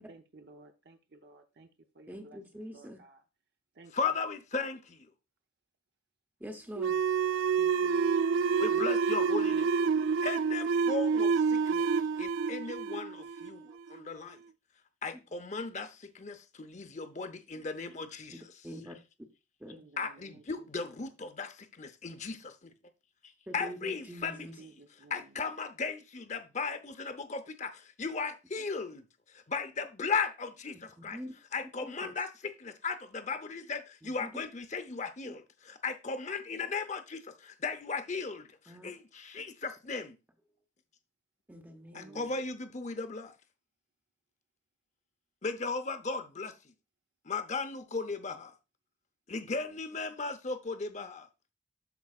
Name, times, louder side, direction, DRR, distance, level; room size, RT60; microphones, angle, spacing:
voice 1, 0.0-1.7 1.9-2.4 2.7-3.2 3.7-4.2 7.5-8.2 19.7-20.7 21.0-21.2 24.3-25.4 41.9-42.4, right 3 dB, 55° right, 0.7 m, -55 dB
voice 2, 2.1-3.0 6.4-7.0 13.7-13.8 18.3-19.0 19.6-19.8 23.5-24.5 31.0-31.3 31.8-32.1 34.0-34.4 35.3-35.4 38.7-38.9 41.5-42.2, equal, 10° right, 0.8 m, -45 dB
voice 3, 3.9-5.1 8.6-9.7 10.2-11.9 12.2-14.4 15.0-18.4 20.0-21.5 21.8-22.7 23.5-24.7 25.1-29.0 29.3-31.2 31.5-40.2 41.9-43.3 45.4-46.5 47.2-48.5 49.3-51.3, left 4 dB, 35° left, 0.7 m, -36 dB
sound 1, 6.8-14.0, right 5 dB, 75° right, 0.3 m, -28 dB
13.0 x 4.7 x 2.4 m
head